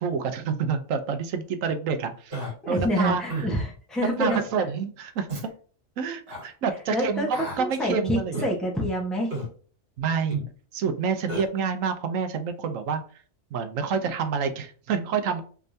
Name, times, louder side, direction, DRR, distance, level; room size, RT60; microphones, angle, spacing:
voice 1, 0.0-2.4 2.7-3.5 4.0-5.3 6.0-8.5 10.0-10.4 10.7-13.0 13.5-15.4, right 6 dB, 85° right, 8 dB, 1.1 m, -28 dB
Human voice, 2.3-2.5 3.3-3.5 4.3-4.5 5.3-5.5 6.3-6.4 7.3-7.6 8.3-8.5 9.3-9.5 10.3-10.5 11.3-11.5, right 2 dB, 55° right, 1.7 m, -32 dB
voice 2, 2.6-4.4 6.9-9.3, equal, ahead, -1 dB, 1.0 m, -27 dB
3.5 x 3.3 x 2.6 m, 0.42 s
omnidirectional pair, 1.4 m